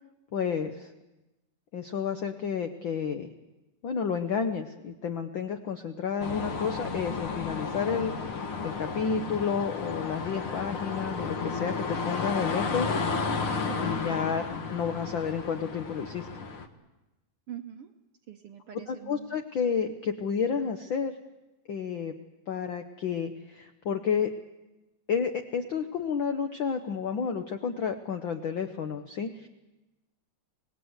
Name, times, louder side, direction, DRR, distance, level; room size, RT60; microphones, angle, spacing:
voice 1, 0.3-0.9 1.7-3.3 3.8-8.1 8.6-12.9 13.8-16.3 18.9-21.1 21.7-22.1 22.5-24.3 25.1-29.5, left 6 dB, 85° left, 7 dB, 1.0 m, -31 dB
sound 1, 6.2-16.7, left 4 dB, 55° left, 1.8 m, -33 dB
voice 2, 13.7-14.0 17.5-17.9 18.3-19.4, right 10 dB, 70° right, 5 dB, 1.5 m, -43 dB
26.0 x 19.0 x 8.0 m, 1.0 s
omnidirectional pair, 3.6 m